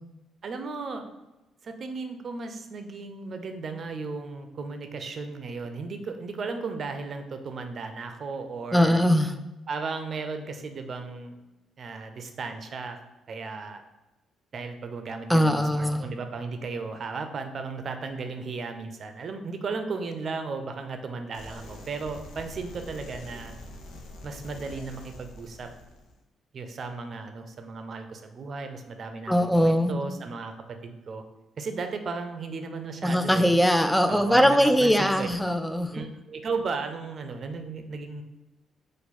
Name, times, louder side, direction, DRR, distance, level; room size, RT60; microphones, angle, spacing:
voice 1, 0.4-1.1 1.6-9.0 9.7-11.4 11.8-13.0 13.3-13.8 14.5-23.5 24.2-25.7 26.5-31.2 31.6-33.5 34.1-35.3 35.9-38.2, right 4 dB, 50° right, 7 dB, 0.6 m, -35 dB
voice 2, 8.7-9.3 15.3-16.0 29.3-30.0 33.0-36.1, equal, 5° left, 8 dB, 0.4 m, -21 dB
sound 1, 21.3-26.2, left 1 dB, 85° left, 0.7 m, -44 dB
4.5 x 2.5 x 4.2 m, 1.0 s
cardioid pair, 90°, 0 cm